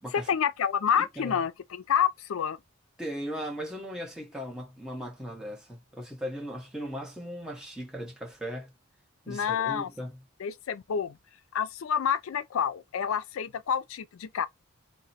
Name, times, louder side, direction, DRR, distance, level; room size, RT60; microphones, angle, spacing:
voice 1, 0.1-2.6 9.3-9.9 10.4-11.2 11.5-14.5, left 8 dB, 75° left, 0.4 m, -28 dB
voice 2, 1.0-1.4 3.0-8.7 9.2-10.2, equal, 5° right, 0.9 m, -38 dB
2.9 x 2.1 x 4.0 m
head